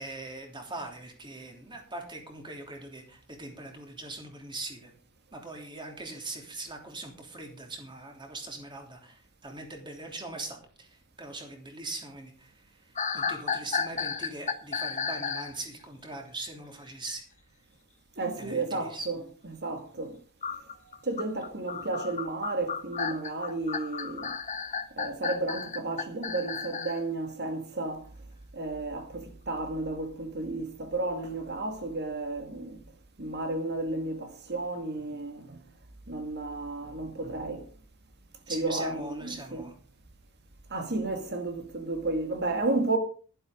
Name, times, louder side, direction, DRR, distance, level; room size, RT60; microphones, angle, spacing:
voice 1, 0.0-4.9 5.3-17.2 18.4-19.1 38.5-39.7, right 2 dB, 20° right, 3.3 m, -41 dB
sound 1, 13.0-15.6 20.4-27.0, left 5 dB, 35° left, 1.2 m, -33 dB
voice 2, 18.2-19.2 19.4-20.2 21.0-24.3 24.9-28.1 28.5-32.8 33.2-35.6 36.1-37.7 38.5-39.6 40.7-43.0, right 2 dB, 50° right, 2.1 m, -32 dB
12.0 x 11.5 x 5.2 m
head